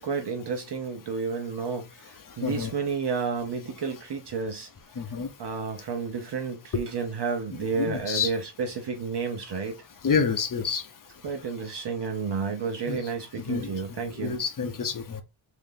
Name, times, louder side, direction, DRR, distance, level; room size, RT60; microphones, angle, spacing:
voice 1, 0.0-4.7 5.4-9.7 11.2-14.4, right 5 dB, 55° right, 0.8 m, -31 dB
voice 2, 2.4-2.7 5.0-5.3 7.6-8.3 10.0-10.8 12.9-13.0 13.4-13.7 14.2-15.2, left 5 dB, 40° left, 0.7 m, -28 dB
3.7 x 2.8 x 3.7 m
wide cardioid pair, 160°, 49 cm